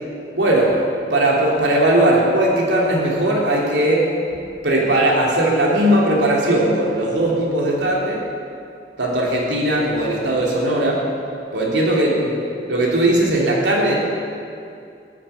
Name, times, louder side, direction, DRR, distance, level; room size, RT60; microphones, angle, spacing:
voice 1, 0.3-0.8 1.1-8.3 9.0-11.1 11.5-14.0, right 1 dB, 85° right, -3 dB, 3.3 m, -18 dB
15.5 x 7.6 x 9.7 m, 2.4 s
head